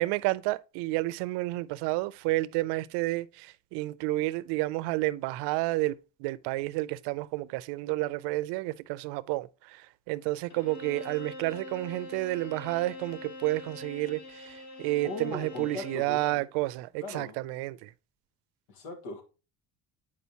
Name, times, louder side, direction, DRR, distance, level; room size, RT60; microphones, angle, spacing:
voice 1, 0.0-17.9, right 19 dB, 80° right, 0.5 m, -31 dB
Bowed string instrument, 10.5-16.2, left 2 dB, 70° left, 2.8 m, -44 dB
voice 2, 15.0-16.4 17.0-17.4 18.7-19.2, left 3 dB, 90° left, 1.7 m, -39 dB
8.2 x 5.0 x 2.8 m
cardioid pair, 135°, 40 cm